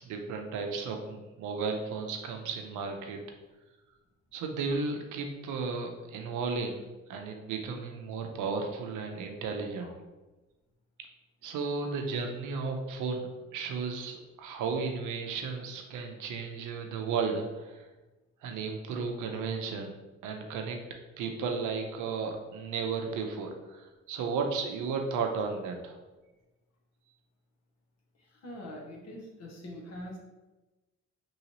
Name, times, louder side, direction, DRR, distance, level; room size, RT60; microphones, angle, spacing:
voice 1, 0.0-3.2 4.3-6.8 7.1-9.9 11.4-17.8 18.4-19.9 20.2-20.8 21.2-26.0, right 5 dB, 80° right, 4 dB, 0.6 m, -34 dB
voice 2, 28.2-30.2, left 1 dB, 60° left, -1 dB, 0.9 m, -44 dB
3.1 x 2.8 x 2.8 m, 1.1 s
cardioid pair, 90°, 30 cm